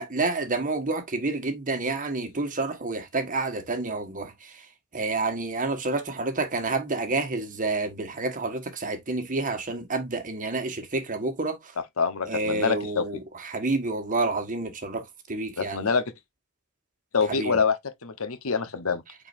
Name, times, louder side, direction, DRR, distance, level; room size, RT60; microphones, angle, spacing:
voice 1, 0.0-4.5 4.9-11.7 12.3-15.9 17.3-17.6, right 3 dB, 40° right, 1.5 m, -29 dB
voice 2, 12.0-13.1 15.6-16.0 17.1-19.0, left 5 dB, 70° left, 1.1 m, -26 dB
8.8 x 4.2 x 2.6 m
head